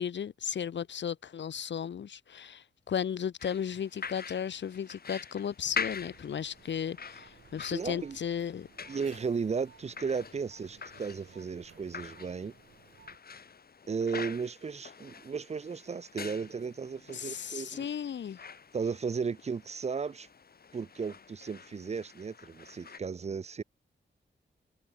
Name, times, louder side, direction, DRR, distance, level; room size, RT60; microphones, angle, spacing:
voice 1, 0.0-8.7 17.1-18.4, left 8 dB, 70° left, 0.9 m, -35 dB
sound 1, 3.4-23.0, left 5 dB, 55° left, 2.9 m, -45 dB
sound 2, 5.6-13.2, right 7 dB, 80° right, 2.6 m, -59 dB
voice 2, 7.7-8.2 8.9-12.5 13.9-17.9 18.7-20.3 20.7-23.6, right 5 dB, 35° right, 0.5 m, -35 dB
wide cardioid pair, 140°, 19 cm